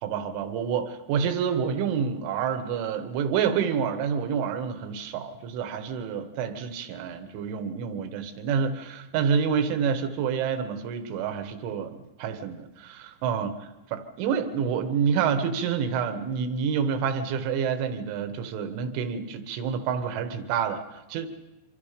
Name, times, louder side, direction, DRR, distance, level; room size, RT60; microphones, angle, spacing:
voice 1, 0.0-20.8 21.1-21.3, right 7 dB, 90° right, 8 dB, 3.8 m, -28 dB
26.0 x 25.0 x 5.1 m, 0.99 s
omnidirectional pair, 5.3 m